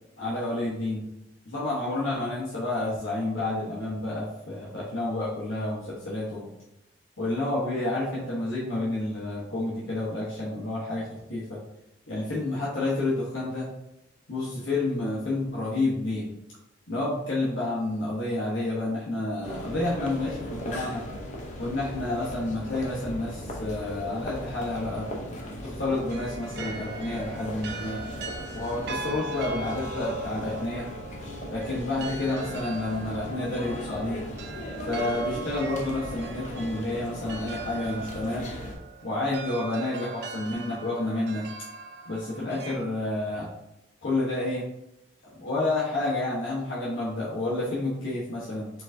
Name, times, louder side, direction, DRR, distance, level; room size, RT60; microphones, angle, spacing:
voice 1, 0.2-1.1 1.4-6.5 7.2-11.6 12.1-13.7 14.3-16.3 16.9-21.0 21.6-25.1 25.5-28.0 28.5-30.9 31.5-34.2 34.9-38.5 39.0-41.5 42.1-43.5 44.0-44.7 45.3-48.7, left 2 dB, 75° left, -7 dB, 1.1 m, -29 dB
sound 1, 19.4-38.8, left 1 dB, 40° left, 0.8 m, -38 dB
sound 2, 26.0-42.8, right 4 dB, 60° right, 0.5 m, -41 dB
4.5 x 3.8 x 2.7 m, 0.87 s
head